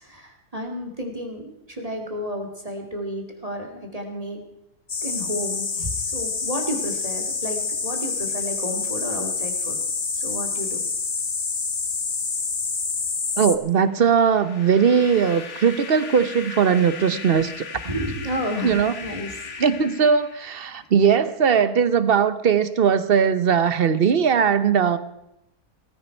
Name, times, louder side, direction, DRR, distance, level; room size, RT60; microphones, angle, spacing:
voice 1, 0.0-4.4 5.0-9.8 10.2-10.8 16.8-17.2 17.9-19.7, equal, 25° right, 3 dB, 2.1 m, -32 dB
sound 1, 4.9-13.6, left 4 dB, 35° left, 1.1 m, -27 dB
voice 2, 13.4-17.5 17.8-17.9 18.6-18.9 19.6-25.0, right 7 dB, 45° right, 13 dB, 0.9 m, -19 dB
sound 2, 13.8-20.8, left 5 dB, 50° left, 1.4 m, -38 dB
18.5 x 15.0 x 4.5 m, 0.85 s
omnidirectional pair, 1.7 m